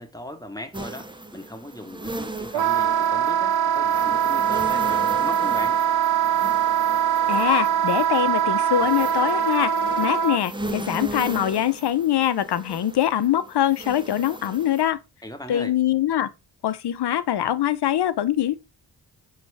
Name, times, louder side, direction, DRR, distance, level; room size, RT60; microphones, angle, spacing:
voice 1, 0.0-5.8 15.2-15.8, left 1 dB, 10° left, 1.1 m, -38 dB
sound 1, 0.7-14.9, right 2 dB, 10° right, 0.5 m, -37 dB
Wind instrument woodwind instrument, 2.5-10.4, right 8 dB, 80° right, 0.6 m, -22 dB
voice 2, 7.3-15.0 15.5-16.3 16.6-18.6, left 11 dB, 65° left, 0.7 m, -23 dB
5.0 x 3.2 x 3.3 m
cardioid pair, 40°, 43 cm